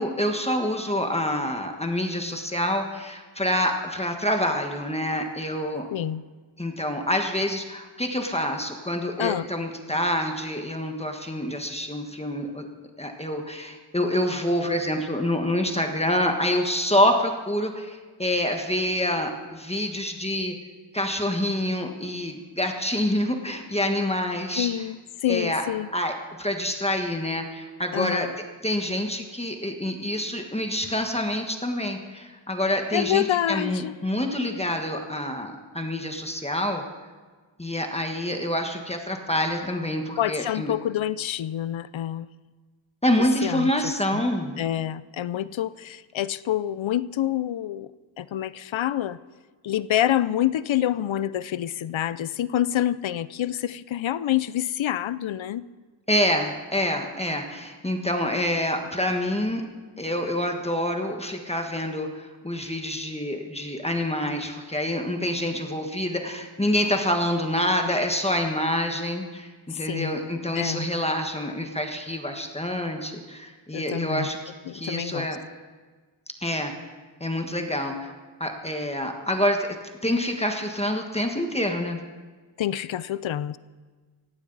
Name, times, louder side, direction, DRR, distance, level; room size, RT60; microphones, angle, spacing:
voice 1, 0.0-5.9 6.6-12.7 13.0-20.5 20.9-24.7 25.3-25.6 25.9-28.3 28.6-36.8 37.6-40.7 43.0-44.6 56.1-59.6 60.0-74.4 74.7-75.4 76.4-76.7 77.2-78.1 78.4-79.6 80.0-82.0, left 1 dB, 15° left, 3 dB, 1.4 m, -27 dB
voice 2, 5.9-6.2 9.2-9.5 24.6-25.9 27.9-28.3 32.9-33.9 40.2-42.3 43.2-44.2 44.6-47.9 48.2-49.2 49.6-55.6 69.8-70.2 70.5-70.9 73.7-74.3 74.7-75.3 82.6-83.6, left 11 dB, 70° left, 17 dB, 0.6 m, -27 dB
17.5 x 15.5 x 4.0 m, 1.4 s
wide cardioid pair, 120°, 48 cm